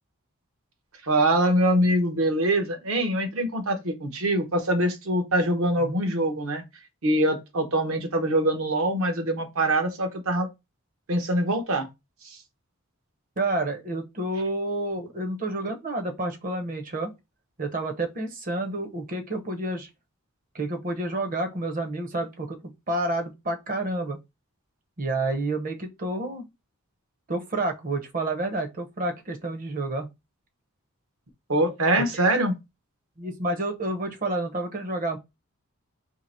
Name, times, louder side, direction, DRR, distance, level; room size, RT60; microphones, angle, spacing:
voice 1, 1.0-6.6 7.0-10.5 11.1-11.9 31.5-32.6, right 1 dB, 65° right, 0.9 m, -24 dB
voice 2, 13.4-17.1 17.6-19.9 20.5-22.6 22.9-24.2 25.0-26.5 27.3-30.1 32.0-32.2 33.2-35.2, right 2 dB, 35° right, 0.7 m, -29 dB
2.9 x 2.8 x 4.1 m
head